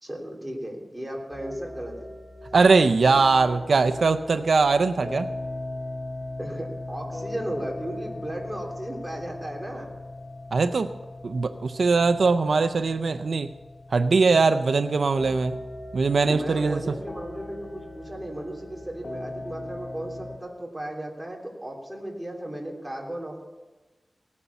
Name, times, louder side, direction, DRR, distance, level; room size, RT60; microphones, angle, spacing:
voice 1, 0.0-2.1 6.4-9.9 16.3-23.4, right 1 dB, 10° right, -1 dB, 3.3 m, -35 dB
sound 1, 1.3-20.4, left 2 dB, 60° left, 2.3 m, -39 dB
voice 2, 2.5-5.3 10.5-10.9 11.2-13.5 13.9-15.6 15.9-17.0, right 4 dB, 80° right, 10 dB, 0.5 m, -21 dB
18.0 x 9.7 x 7.0 m, 1.2 s
wide cardioid pair, 100°, 0 cm